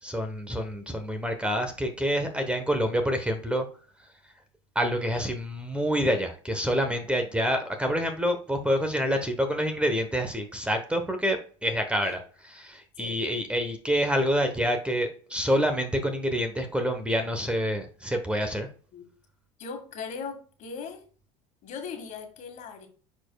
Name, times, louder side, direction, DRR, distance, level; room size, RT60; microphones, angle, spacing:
voice 1, 0.0-3.7 4.7-18.7, equal, 5° right, 1.0 m, -27 dB
voice 2, 19.6-21.0 21.6-22.9, left 5 dB, 50° left, 1.9 m, -39 dB
9.9 x 4.4 x 2.3 m
supercardioid pair, 100°, 16 cm